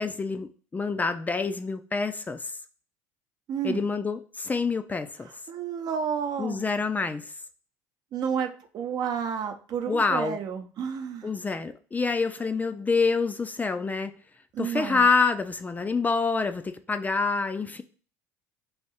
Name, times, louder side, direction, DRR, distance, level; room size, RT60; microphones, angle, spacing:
voice 1, 0.0-2.5 3.6-5.3 6.4-7.3 9.9-10.4 11.2-14.1 14.6-17.8, left 4 dB, 20° left, 9 dB, 0.4 m, -27 dB
voice 2, 3.5-3.8 5.5-6.6 8.1-11.3 14.5-15.1, right 7 dB, 50° right, 6 dB, 0.7 m, -31 dB
3.4 x 2.7 x 4.1 m, 0.39 s
hypercardioid pair, 80°, 8 cm